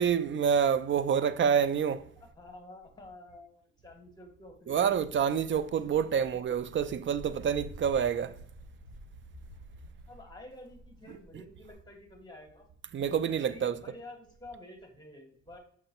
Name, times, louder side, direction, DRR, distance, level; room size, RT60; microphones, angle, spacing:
voice 1, 0.0-2.0 4.7-8.4 12.9-13.8, right 7 dB, 40° right, 0.5 m, -27 dB
voice 2, 2.2-5.0 10.1-12.7 13.5-15.6, left 2 dB, 15° left, 1.8 m, -50 dB
Walk footsteps, 4.9-11.7, right 1 dB, 85° right, 1.9 m, -50 dB
6.3 x 5.9 x 2.9 m
cardioid pair, 90°, 30 cm